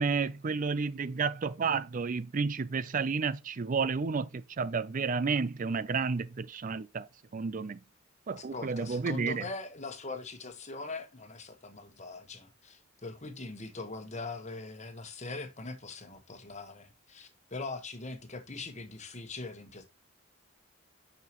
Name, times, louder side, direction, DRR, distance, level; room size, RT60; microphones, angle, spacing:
voice 1, 0.0-7.8 8.3-9.5, right 5 dB, 40° right, 0.4 m, -31 dB
voice 2, 8.3-19.8, left 3 dB, 35° left, 1.4 m, -42 dB
9.3 x 5.7 x 3.0 m
head